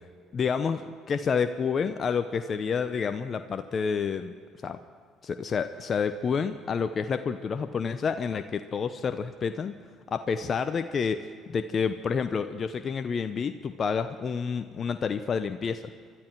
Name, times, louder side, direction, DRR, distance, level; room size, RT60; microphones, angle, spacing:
voice 1, 0.3-0.8 1.1-4.3 4.6-4.8 5.2-9.7 10.1-15.8, left 6 dB, 45° left, 9 dB, 0.7 m, -29 dB
23.5 x 13.0 x 4.6 m, 2.1 s
supercardioid pair, 65°, 0 cm